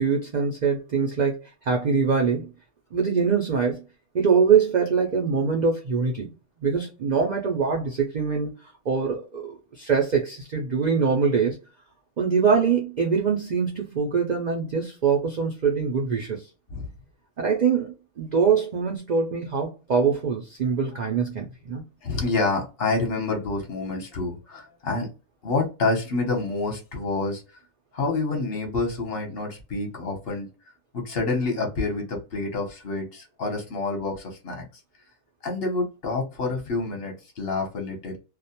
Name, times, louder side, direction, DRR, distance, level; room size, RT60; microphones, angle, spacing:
voice 1, 0.0-1.4 1.6-2.5 2.9-3.8 4.1-6.3 6.6-11.6 12.2-16.4 17.4-21.8, right 6 dB, 65° right, 0.4 m, -23 dB
voice 2, 22.0-25.1 25.4-27.4 27.9-30.5 30.9-34.6 35.4-38.2, left 3 dB, 50° left, 0.9 m, -28 dB
2.4 x 2.1 x 2.7 m
omnidirectional pair, 1.4 m